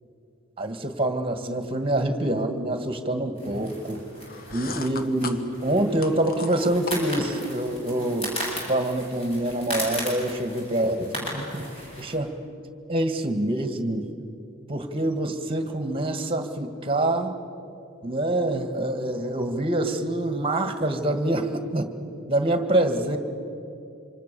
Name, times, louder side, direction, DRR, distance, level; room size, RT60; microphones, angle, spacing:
voice 1, 0.6-4.0 4.5-8.3 8.7-11.7 12.0-12.3 12.9-14.1 14.7-17.4 18.0-21.9 22.3-23.2, right 1 dB, 25° right, 7 dB, 1.8 m, -26 dB
sound 1, 3.4-12.2, equal, 30° left, 7.9 m, -36 dB
sound 2, 4.2-7.5, left 3 dB, 45° left, 1.3 m, -37 dB
27.5 x 26.0 x 6.9 m, 2.6 s
head